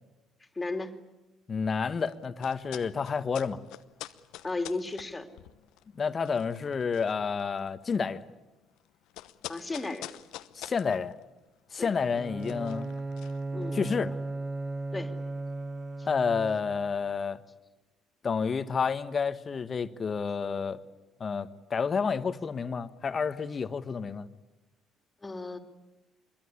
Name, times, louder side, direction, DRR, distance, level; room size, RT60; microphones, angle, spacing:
voice 1, 0.5-1.0 4.4-5.3 9.5-10.1 11.8-11.9 13.5-13.8 14.9-15.1 16.0-16.1 25.2-25.6, left 3 dB, 20° left, 2.9 m, -34 dB
voice 2, 1.5-3.6 6.0-8.2 10.5-11.1 11.7-12.9 13.7-14.1 16.1-17.4 18.2-20.8 21.2-24.3, left 5 dB, 40° left, 1.4 m, -30 dB
sound 1, 1.9-14.1, left 15 dB, 70° left, 1.0 m, -48 dB
Bowed string instrument, 12.1-16.9, right 2 dB, 30° right, 1.3 m, -36 dB
25.5 x 22.5 x 9.8 m
hypercardioid pair, 55°, 0 cm